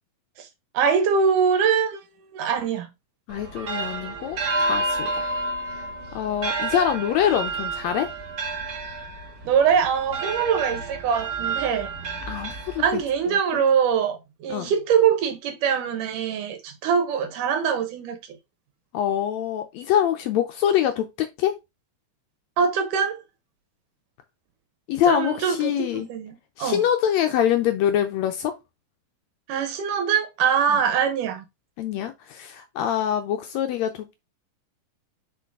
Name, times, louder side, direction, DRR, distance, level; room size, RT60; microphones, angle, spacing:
voice 1, 0.7-2.0 2.3-2.9 9.4-11.9 12.8-18.2 22.6-23.2 25.1-26.8 29.5-31.4, right 7 dB, 85° right, 2.7 m, -23 dB
voice 2, 3.3-5.3 5.7-5.8 6.1-8.1 12.3-13.0 13.3-13.6 14.5-14.7 18.9-21.5 24.9-26.1 26.6-28.5 30.7-30.8 31.8-34.2, left 10 dB, 80° left, 1.6 m, -25 dB
sound 1, 3.3-13.2, right 3 dB, 45° right, 1.2 m, -30 dB
6.9 x 3.9 x 3.6 m
omnidirectional pair, 3.6 m